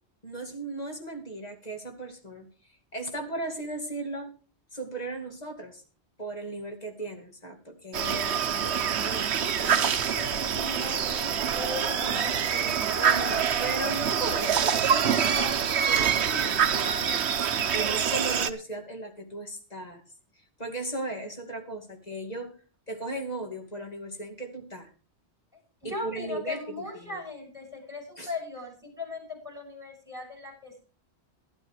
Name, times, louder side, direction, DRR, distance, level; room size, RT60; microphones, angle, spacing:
voice 1, 0.2-2.5 2.9-4.3 4.7-5.8 6.2-9.6 13.0-20.0 20.6-22.5 22.9-24.9 25.8-26.6 26.9-27.2 28.2-28.3, right 2 dB, 35° left, 3 dB, 2.6 m, -36 dB
sound 1, 7.9-18.5, right 8 dB, 80° right, 1.1 m, -26 dB
voice 2, 9.6-13.0 25.8-30.8, left 2 dB, 5° right, 0 dB, 6.0 m, -38 dB
12.5 x 11.5 x 4.8 m, 0.38 s
omnidirectional pair, 1.1 m